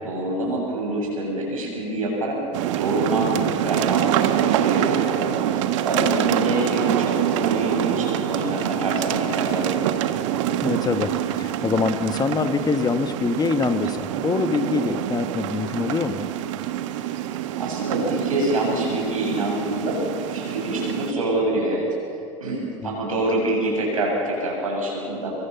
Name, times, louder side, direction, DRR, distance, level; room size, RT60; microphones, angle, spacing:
voice 1, 0.0-2.4 2.8-9.8 17.2-17.3 17.6-20.0 20.3-21.9 22.4-25.3, right 1 dB, 85° right, -2 dB, 7.6 m, -26 dB
sound 1, 2.5-21.1, right 11 dB, 65° right, 1.4 m, -25 dB
voice 2, 10.6-16.3 22.8-22.9, left 5 dB, 20° left, 9 dB, 1.4 m, -24 dB
24.5 x 23.5 x 7.1 m, 2.7 s
hypercardioid pair, 80°, 17 cm